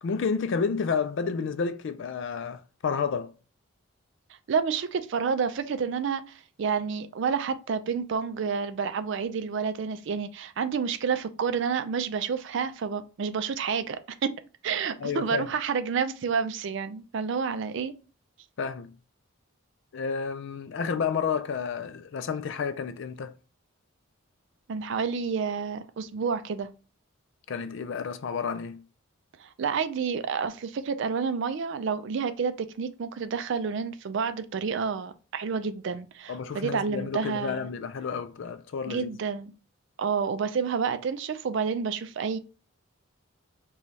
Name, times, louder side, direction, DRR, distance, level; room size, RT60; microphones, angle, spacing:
voice 1, 0.0-3.3 15.0-15.5 18.6-18.9 19.9-23.3 27.5-28.8 36.3-39.1, left 5 dB, 60° left, 0.4 m, -30 dB
voice 2, 4.5-14.3 14.6-17.9 24.7-26.7 29.4-37.7 38.9-39.5 40.0-42.4, right 6 dB, 60° right, 0.4 m, -29 dB
4.1 x 2.3 x 3.1 m
head